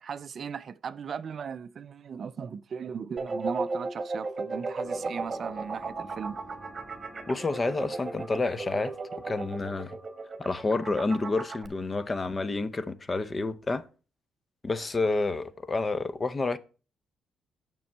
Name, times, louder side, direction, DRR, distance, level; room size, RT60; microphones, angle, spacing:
voice 1, 0.0-6.4, right 6 dB, 50° right, 0.4 m, -37 dB
sound 1, 3.2-11.7, right 3 dB, 30° right, 1.1 m, -35 dB
sound 2, 4.8-10.5, right 1 dB, ahead, 1.5 m, -51 dB
voice 2, 7.3-8.9 9.2-10.0 10.4-13.8 14.6-16.6, left 3 dB, 30° left, 0.6 m, -29 dB
6.9 x 6.1 x 4.4 m
cardioid pair, 90°, 0 cm